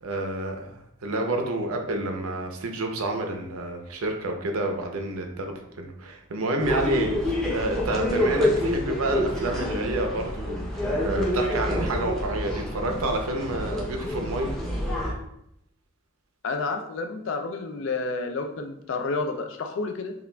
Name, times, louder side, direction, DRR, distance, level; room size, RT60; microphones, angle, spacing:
voice 1, 0.0-10.6 11.0-14.5, right 2 dB, 90° right, 3 dB, 0.6 m, -29 dB
sound 1, 6.6-15.1, left 1 dB, ahead, 0.6 m, -27 dB
voice 2, 16.4-20.1, left 3 dB, 60° left, 4 dB, 0.3 m, -30 dB
5.6 x 2.3 x 2.2 m, 0.79 s
head